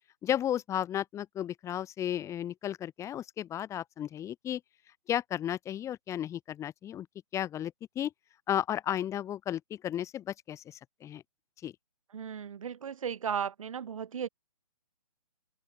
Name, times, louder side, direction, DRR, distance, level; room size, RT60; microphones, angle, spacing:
voice 1, 0.2-4.6 5.1-7.1 7.3-8.1 8.5-11.2 11.6-11.7, left 11 dB, 15° left, 4.3 m, -34 dB
voice 2, 12.1-14.3, right 7 dB, 60° right, 7.2 m, -35 dB
hypercardioid pair, 140°, 19 cm